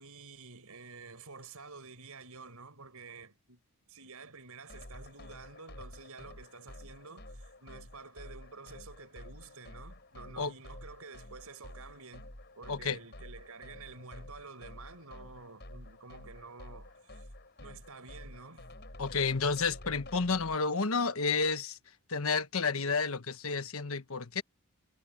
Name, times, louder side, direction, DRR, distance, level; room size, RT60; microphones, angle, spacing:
voice 1, 0.0-3.6 3.9-17.2 17.6-18.7, right 4 dB, 85° right, 5.5 m, -50 dB
sound 1, 4.7-20.6, left 1 dB, 50° left, 5.8 m, -50 dB
voice 2, 12.7-13.0 19.0-21.8 22.1-24.4, left 4 dB, 70° left, 1.3 m, -31 dB
head